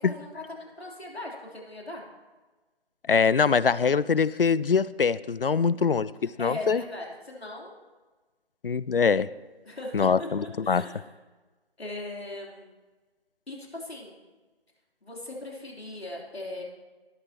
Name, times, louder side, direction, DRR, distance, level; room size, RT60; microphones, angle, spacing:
voice 1, 0.0-2.0 6.4-7.8 9.6-11.1 11.8-12.7 13.5-14.2 15.0-16.6, left 2 dB, 80° left, -2 dB, 3.5 m, -39 dB
voice 2, 3.1-6.1 6.4-6.8 8.6-9.3 9.9-10.8, left 5 dB, 65° left, 19 dB, 0.4 m, -23 dB
18.5 x 7.6 x 2.9 m, 1.3 s
figure-of-eight pair, 170°, 31 cm